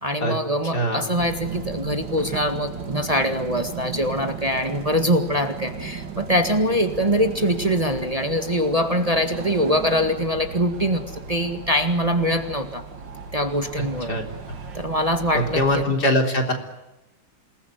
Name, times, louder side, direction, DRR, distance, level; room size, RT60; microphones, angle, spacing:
voice 1, 0.0-12.8 13.3-14.2 14.7-15.8, equal, 20° right, 7 dB, 1.9 m, -23 dB
voice 2, 0.7-1.1 14.1-14.2 15.3-16.5, left 1 dB, 60° left, 4 dB, 4.3 m, -22 dB
sound 1, 1.1-15.9, right 5 dB, 85° right, 2.7 m, -36 dB
27.5 x 20.0 x 9.4 m, 0.97 s
omnidirectional pair, 1.9 m